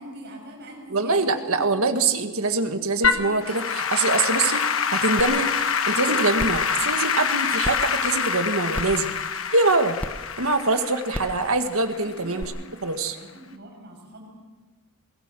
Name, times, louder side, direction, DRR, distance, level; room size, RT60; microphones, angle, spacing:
voice 1, 0.0-2.1 12.0-14.3, right 1 dB, 50° right, 1 dB, 7.0 m, -43 dB
voice 2, 0.9-4.6 4.9-5.5 5.9-9.1 9.5-10.0 10.4-12.5 12.8-13.2, right 3 dB, 70° right, 7 dB, 1.7 m, -24 dB
Applause / Keyboard (musical), 3.0-12.4, left 6 dB, 65° left, 1.3 m, -26 dB
sound 1, 5.2-5.3 5.7-5.8 6.4-6.6 7.6-7.7 8.7-9.0 10.0-10.1 11.1-11.4 12.4-12.5, equal, 5° left, 0.9 m, -31 dB
22.0 x 17.0 x 7.7 m, 1.2 s
head